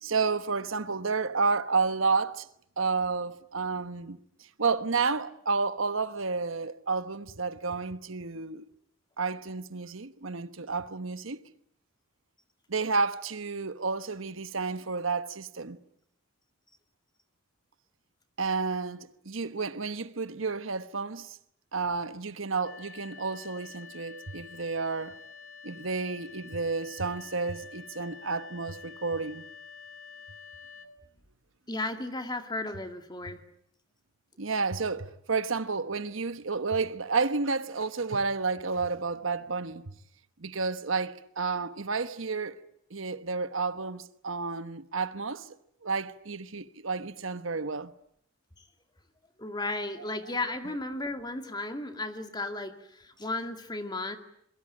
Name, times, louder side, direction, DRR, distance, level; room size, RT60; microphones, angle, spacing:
voice 1, 0.0-2.5 2.8-4.2 4.6-8.6 9.2-11.4 12.7-15.8 18.4-21.4 21.7-25.1 25.6-29.4 34.4-39.9 40.4-42.5 42.9-45.5 45.8-47.9, right 4 dB, 75° right, 1.2 m, -31 dB
sound 1, 22.6-30.9, left 5 dB, 70° left, 3.3 m, -48 dB
voice 2, 31.7-33.4 49.4-54.2, left 2 dB, 20° left, 2.3 m, -34 dB
28.0 x 22.5 x 8.8 m
head